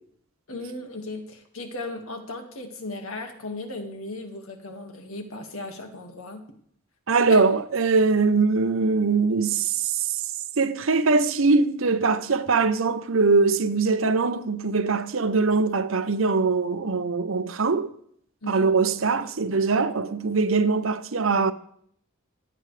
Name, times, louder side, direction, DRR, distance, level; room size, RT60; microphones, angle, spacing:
voice 1, 0.5-6.4 7.3-7.4 18.4-18.7, left 2 dB, 85° left, 1.9 m, -36 dB
voice 2, 7.1-10.2 10.6-17.9 18.5-21.5, right 4 dB, 70° right, 0.8 m, -22 dB
26.0 x 8.9 x 3.3 m
head